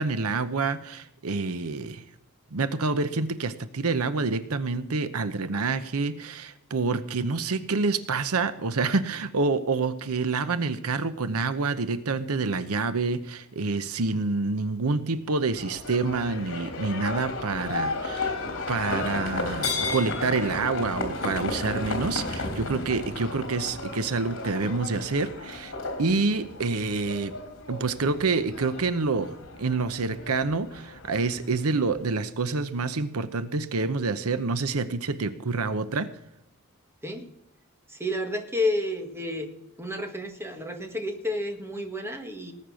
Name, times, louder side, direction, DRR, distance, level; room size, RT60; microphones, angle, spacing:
voice 1, 0.0-2.0 2.5-18.4 18.7-25.7 26.0-27.3 27.7-29.3 29.6-36.1, right 4 dB, 80° right, 13 dB, 0.8 m, -27 dB
Livestock farm animals working animals, 15.5-32.0, left 3 dB, 65° left, 3.3 m, -34 dB
voice 2, 38.0-39.5 39.8-42.5, left 1 dB, 10° right, 5 dB, 1.7 m, -30 dB
19.0 x 8.7 x 6.3 m, 0.81 s
head